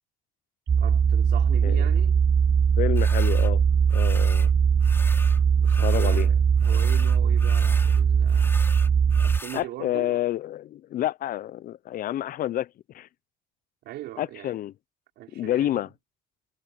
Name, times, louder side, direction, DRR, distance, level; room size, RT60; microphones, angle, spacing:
sound 1, 0.7-9.4, right 7 dB, 25° right, 0.5 m, -20 dB
voice 1, 0.8-2.2 5.6-8.6 9.2-10.3 13.8-14.6 15.2-15.9, right 15 dB, 80° right, 5.7 m, -40 dB
voice 2, 2.8-3.6 3.9-4.5 5.8-6.3 9.5-12.7 12.9-13.1 14.2-14.7 15.3-15.9, left 13 dB, 55° left, 0.6 m, -29 dB
sound 2, 3.0-3.5 3.9-4.5 4.8-6.3 6.6-9.7, left 2 dB, 15° left, 4.6 m, -40 dB
cardioid pair, 110°, 17 cm